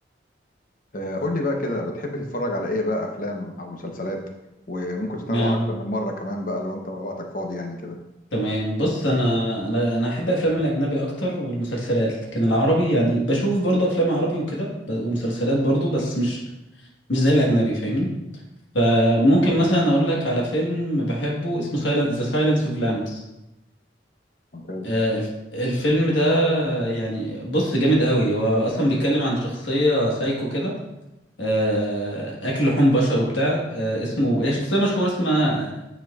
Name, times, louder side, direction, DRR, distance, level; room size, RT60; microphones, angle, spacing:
voice 1, 0.9-4.2 4.7-8.0 19.3-19.5 24.5-24.9, left 1 dB, 45° left, 3 dB, 0.8 m, -29 dB
voice 2, 5.3-5.7 8.3-16.4 17.1-18.1 18.7-23.2 24.8-25.3 25.5-30.7 31.4-35.7, equal, 85° left, -3 dB, 1.4 m, -22 dB
9.2 x 4.4 x 2.4 m, 0.95 s
head